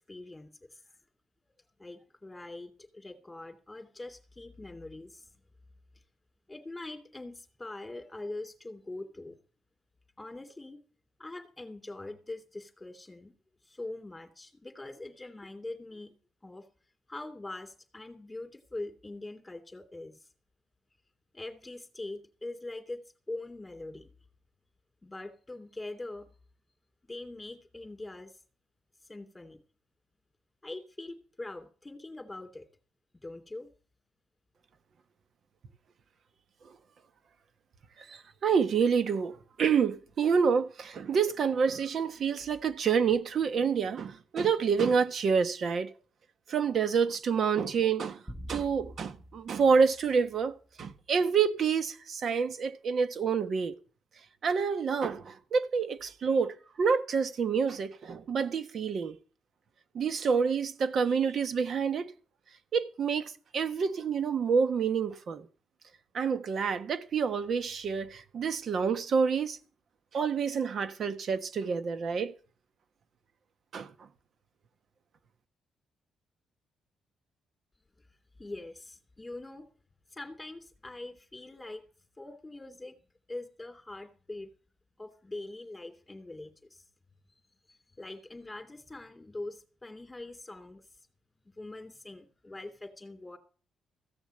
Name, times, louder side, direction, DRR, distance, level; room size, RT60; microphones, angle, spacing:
voice 1, 0.1-0.8 1.8-5.3 6.5-9.4 10.2-10.8 11.2-13.3 13.6-16.1 16.4-16.7 17.1-20.3 21.3-23.0 23.3-24.1 25.0-26.3 27.1-28.3 29.1-29.6 30.6-32.7 33.2-33.7 78.4-79.7 80.1-81.8 82.2-83.0 83.3-84.5 85.0-86.8 87.7-90.8 91.4-93.4, left 2 dB, 15° left, 3.0 m, -43 dB
voice 2, 38.0-45.9 46.5-48.2 48.5-53.7 54.4-59.2 59.9-62.1 62.7-65.5 66.1-69.6 70.1-72.3 73.7-73.9, right 6 dB, 55° right, 1.2 m, -28 dB
sound 1, 48.3-50.8, equal, 5° right, 1.3 m, -46 dB
15.5 x 7.1 x 7.9 m
cardioid pair, 90°, 0 cm